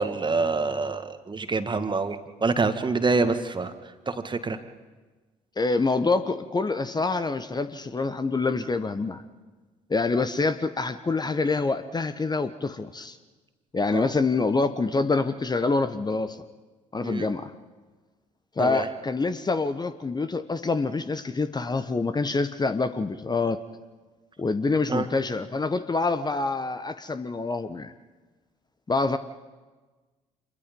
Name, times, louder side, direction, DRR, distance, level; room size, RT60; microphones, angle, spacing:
voice 1, 0.0-3.7 4.1-4.6 13.9-14.1 17.0-17.3 18.6-18.9 24.9-25.1, right 4 dB, 25° right, 9 dB, 1.8 m, -26 dB
voice 2, 5.6-9.2 9.9-13.2 13.7-16.4 16.9-17.5 18.6-23.6 24.4-27.9 28.9-29.2, left 3 dB, 25° left, 10 dB, 1.1 m, -26 dB
26.5 x 22.0 x 5.3 m, 1.3 s
hypercardioid pair, 50°, 17 cm